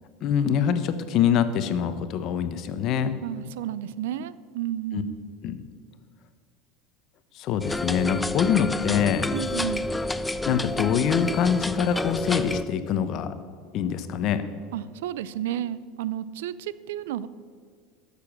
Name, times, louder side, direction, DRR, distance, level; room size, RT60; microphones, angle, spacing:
voice 1, 0.2-3.2 4.9-5.0 5.4-5.6 7.3-9.3 10.5-13.3 13.7-14.4, left 8 dB, 45° left, 11 dB, 0.8 m, -24 dB
voice 2, 3.2-5.2 9.3-9.9 14.7-17.3, right 11 dB, 90° right, 17 dB, 0.4 m, -32 dB
sound 1, 7.6-12.6, left 2 dB, 5° left, 0.3 m, -29 dB
13.5 x 6.9 x 6.0 m, 2.1 s
supercardioid pair, 150°, 0 cm